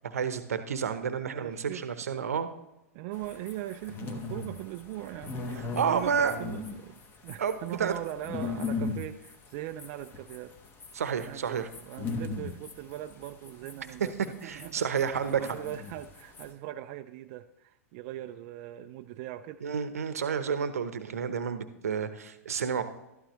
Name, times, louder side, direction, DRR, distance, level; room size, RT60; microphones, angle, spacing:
voice 1, 0.0-2.5 5.8-6.3 7.4-7.9 10.9-11.7 14.4-15.4 19.6-22.8, right 7 dB, 75° right, 11 dB, 0.9 m, -30 dB
voice 2, 1.3-2.0 2.9-10.6 11.2-14.1 14.4-14.9 15.3-19.7, right 14 dB, 45° right, 7 dB, 0.4 m, -40 dB
sound 1, 3.1-16.5, left 4 dB, 30° left, 1.3 m, -38 dB
12.5 x 11.5 x 3.1 m, 0.93 s
figure-of-eight pair, 105°, 8 cm